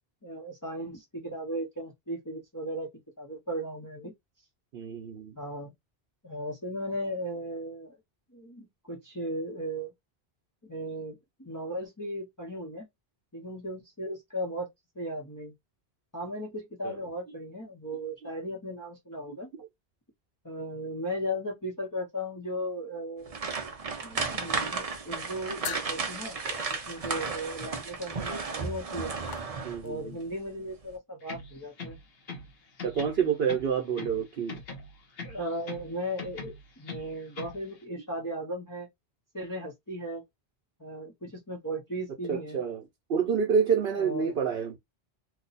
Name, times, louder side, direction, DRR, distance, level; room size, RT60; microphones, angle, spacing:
voice 1, 0.2-2.9 3.2-4.1 5.4-5.7 6.2-8.0 8.3-9.9 10.6-12.9 13.3-14.7 15.0-15.5 16.1-19.5 20.4-23.4 24.0-26.4 26.9-29.1 29.8-32.0 35.2-38.9 39.3-40.2 40.8-42.6 44.0-44.3, equal, 20° left, 0.8 m, -36 dB
voice 2, 4.7-5.3 16.8-17.0 29.6-30.2 32.8-34.6 42.3-42.8 43.1-44.8, right 7 dB, 65° right, 0.9 m, -28 dB
sound 1, 23.3-29.9 30.3-30.5 30.9-31.0, right 4 dB, 45° right, 0.6 m, -34 dB
sound 2, 25.6-30.1, left 6 dB, 55° left, 0.7 m, -44 dB
sound 3, 31.2-32.5 32.8-34.2 34.5-35.9 36.2-37.6, left 3 dB, 70° left, 1.1 m, -41 dB
2.7 x 2.2 x 4.0 m
omnidirectional pair, 1.1 m